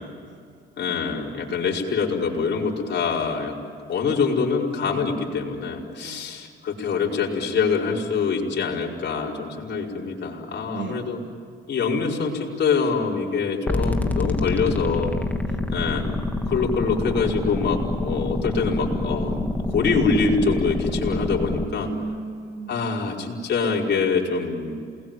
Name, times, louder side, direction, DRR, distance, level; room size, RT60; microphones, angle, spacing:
voice 1, 0.0-0.6 6.0-6.2 10.7-11.3 15.4-15.9 21.8-23.2, right 4 dB, 65° right, 3 dB, 3.0 m, -37 dB
voice 2, 0.8-3.5 3.9-11.2 11.7-15.2 15.7-16.0 16.5-21.9 22.7-24.8, left 5 dB, 60° left, -2 dB, 5.2 m, -25 dB
sound 1, 13.7-21.7, left 2 dB, 10° left, 2.6 m, -26 dB
29.0 x 20.5 x 9.2 m, 2.2 s
cardioid pair, 90°, 20 cm